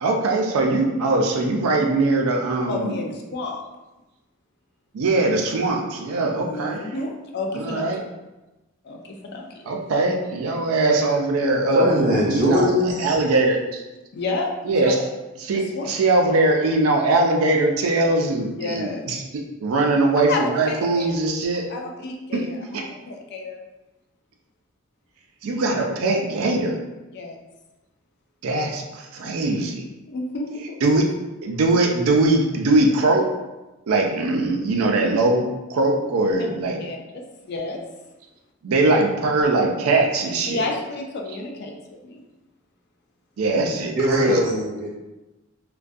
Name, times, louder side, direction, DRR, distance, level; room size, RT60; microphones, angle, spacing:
voice 1, 0.0-3.0 4.9-6.8 7.5-8.0 9.7-12.0 12.3-13.8 14.7-15.0 15.4-19.2 19.6-21.6 25.4-26.8 28.4-29.8 30.8-31.0 31.4-33.3 33.9-36.8 38.6-40.6 43.4-44.4, right 2 dB, 90° right, 1 dB, 0.4 m, -21 dB
voice 2, 2.7-3.6 6.4-7.9 8.8-9.6 14.1-15.0 15.5-15.8 18.6-19.1 20.2-21.1 21.7-23.6 27.1-27.4 30.1-30.8 36.8-37.8 40.5-42.2, left 3 dB, 50° left, 1 dB, 0.3 m, -31 dB
voice 3, 11.7-13.2 43.5-43.7 43.9-44.9, equal, 40° right, -5 dB, 0.7 m, -21 dB
2.5 x 2.2 x 2.3 m, 1.1 s
head